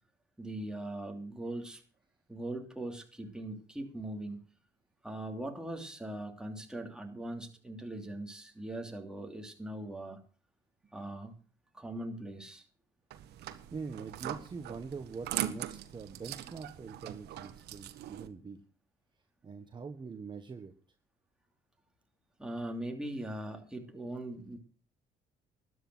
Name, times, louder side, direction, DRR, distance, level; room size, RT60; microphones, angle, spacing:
voice 1, 0.4-1.8 2.3-4.4 5.0-10.2 10.9-11.3 11.7-12.7 22.4-24.6, right 1 dB, 5° right, 2 dB, 3.0 m, -40 dB
sound 1, 13.1-18.3, right 12 dB, 75° right, 1.5 m, -41 dB
voice 2, 13.3-18.6 19.4-20.7, right 5 dB, 25° right, 6 dB, 1.4 m, -44 dB
13.0 x 9.7 x 6.3 m, 0.39 s
cardioid pair, 110°, 17 cm